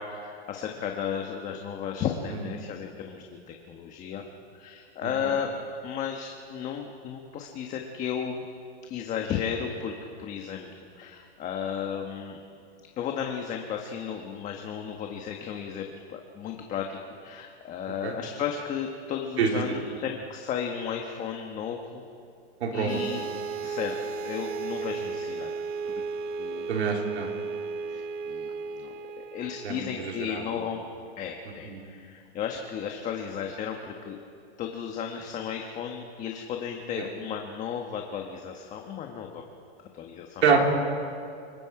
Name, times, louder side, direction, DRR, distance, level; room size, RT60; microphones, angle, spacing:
voice 1, 0.0-4.2 4.5-5.5 5.8-8.4 8.9-10.7 11.0-12.4 13.0-22.0 22.7-23.3 23.6-24.0 24.2-25.5 25.9-26.0 26.4-26.7 27.9-30.8 31.2-34.2 34.6-39.4 39.9-40.6, left 7 dB, 25° left, 3 dB, 1.3 m, -34 dB
voice 2, 22.6-23.0 26.7-27.3 29.6-30.4 31.6-31.8 37.0-37.1 40.4-40.6, right 6 dB, 80° right, 1 dB, 4.1 m, -26 dB
sound 1, 22.9-30.6, right 5 dB, 50° right, 1.4 m, -34 dB
29.5 x 19.5 x 4.9 m, 2.4 s
supercardioid pair, 155°, 32 cm